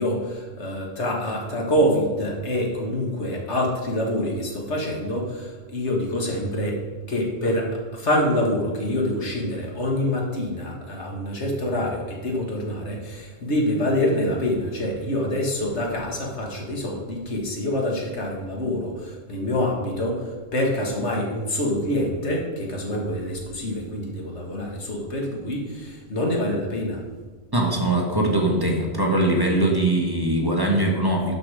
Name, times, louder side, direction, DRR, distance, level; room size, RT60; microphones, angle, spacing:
voice 1, 0.0-6.8 7.1-27.0, left 1 dB, 85° left, 0 dB, 2.1 m, -26 dB
voice 2, 27.5-31.3, right 1 dB, 20° right, 0 dB, 1.4 m, -21 dB
12.0 x 5.3 x 4.9 m, 1.4 s
omnidirectional pair, 1.1 m